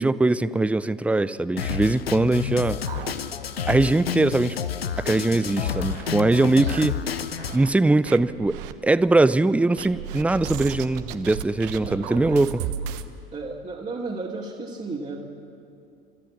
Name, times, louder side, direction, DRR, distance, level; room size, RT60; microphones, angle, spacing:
voice 1, 0.0-2.8 3.7-4.6 5.0-7.0 7.5-12.6, right 2 dB, 5° right, 16 dB, 0.5 m, -21 dB
Drum kit, 1.6-7.6, left 7 dB, 85° left, 0.8 m, -30 dB
sound 1, 2.9-3.7 4.1-4.2 4.5-4.6 5.2-6.1 6.6-7.7 8.0-8.7 9.8-13.1, right 9 dB, 65° right, 1.1 m, -35 dB
voice 2, 11.7-12.4 13.3-15.3, right 3 dB, 25° right, -3 dB, 2.5 m, -34 dB
30.0 x 14.0 x 7.3 m, 2.5 s
figure-of-eight pair, 75°, 29 cm